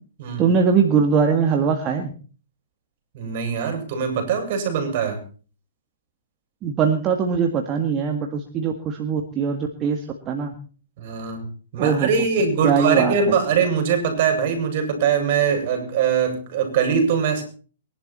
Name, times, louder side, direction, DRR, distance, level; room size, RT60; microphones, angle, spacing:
voice 1, 0.4-2.1 6.6-10.5 11.8-12.1 12.6-13.4, right 6 dB, 25° right, 4 dB, 2.0 m, -21 dB
voice 2, 3.1-5.2 11.0-11.5 11.7-17.4, right 6 dB, 50° right, 5 dB, 7.1 m, -22 dB
23.0 x 11.5 x 4.4 m, 0.39 s
hypercardioid pair, 135°, 0 cm